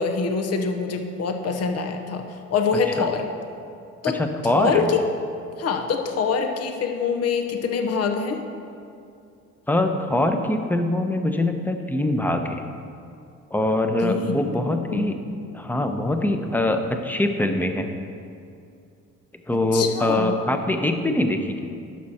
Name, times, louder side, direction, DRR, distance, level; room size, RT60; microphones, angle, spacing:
voice 1, 0.0-3.3 4.0-4.2 4.5-5.0 5.6-8.4 14.0-15.2 19.7-20.4, left 5 dB, 55° left, 5 dB, 0.8 m, -25 dB
voice 2, 4.1-4.9 9.7-12.6 13.5-15.2 15.5-17.9 19.5-21.6, left 1 dB, 5° left, 6 dB, 0.7 m, -23 dB
12.0 x 6.0 x 4.3 m, 2.4 s
cardioid pair, 90°, 30 cm